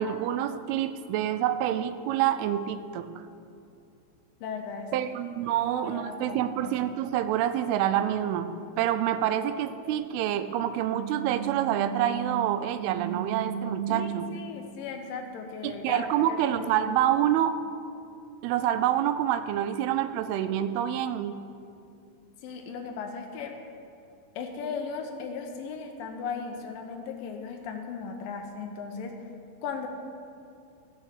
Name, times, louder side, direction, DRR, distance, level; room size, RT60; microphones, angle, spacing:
voice 1, 0.0-3.1 4.9-8.5 8.8-14.3 15.6-17.6 18.4-21.4, right 11 dB, 85° right, 11 dB, 2.5 m, -27 dB
voice 2, 4.4-4.9 5.5-6.9 13.9-16.7 17.0-17.3 22.4-23.5 24.4-29.1 29.6-29.9, left 5 dB, 75° left, 4 dB, 2.2 m, -37 dB
sound 1, 10.8-16.1, right 9 dB, 45° right, 0.7 m, -36 dB
13.5 x 5.4 x 6.5 m, 2.6 s
omnidirectional pair, 4.4 m